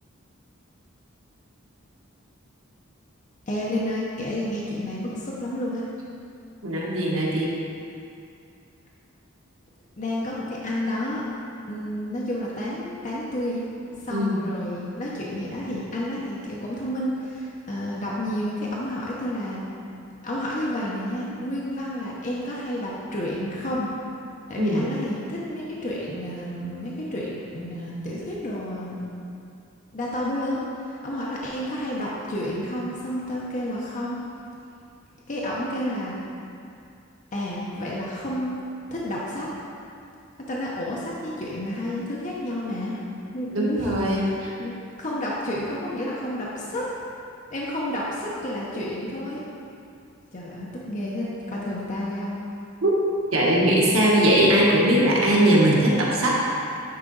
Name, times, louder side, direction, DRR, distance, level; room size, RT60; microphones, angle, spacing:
voice 1, 3.5-5.8 10.0-11.2 11.7-13.6 14.0-19.6 20.2-23.9 24.5-29.1 29.9-30.6 30.9-34.2 35.3-36.2 37.3-38.5 38.9-39.5 40.5-42.9 43.3-44.3 44.6-44.7 45.0-46.9 47.5-49.4 50.3-52.3, left 1 dB, 35° left, -5 dB, 0.8 m, -30 dB
voice 2, 6.6-7.5 14.1-14.4 24.6-24.9 43.5-44.5 52.8-53.0 53.3-56.4, right 1 dB, 80° right, -4 dB, 1.3 m, -20 dB
9.6 x 3.9 x 3.9 m, 2.5 s
head